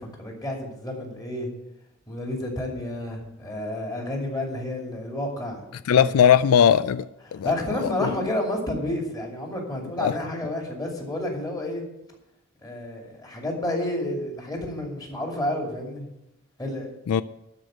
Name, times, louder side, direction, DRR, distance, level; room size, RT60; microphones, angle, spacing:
voice 1, 0.0-1.5 2.1-5.6 6.0-6.1 7.3-11.8 12.6-16.1 16.6-16.9, left 1 dB, 20° left, 2.6 m, -30 dB
voice 2, 5.9-7.1 7.3-7.5 7.8-8.1 10.0-10.1 17.1-17.2, left 8 dB, 80° left, 0.3 m, -19 dB
12.5 x 5.1 x 8.9 m
head